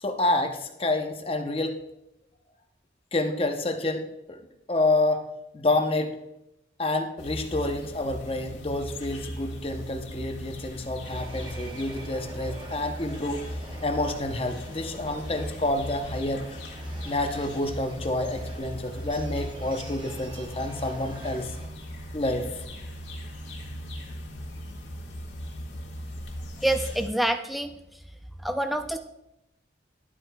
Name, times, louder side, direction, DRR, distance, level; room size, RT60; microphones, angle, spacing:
voice 1, 0.0-1.7 3.1-4.0 4.3-4.4 4.7-5.3 5.5-6.2 6.8-13.4 13.8-16.6 17.0-21.5 22.1-22.6, left 2 dB, 30° left, 4 dB, 0.7 m, -28 dB
sound 1, 7.2-27.1, equal, 75° left, 1.5 m, -38 dB
Subway metro underground, 11.0-21.6, right 1 dB, 25° right, 0.9 m, -46 dB
voice 2, 26.6-28.0 28.4-29.0, right 1 dB, ahead, 7 dB, 0.4 m, -27 dB
11.5 x 7.8 x 2.2 m, 0.86 s
head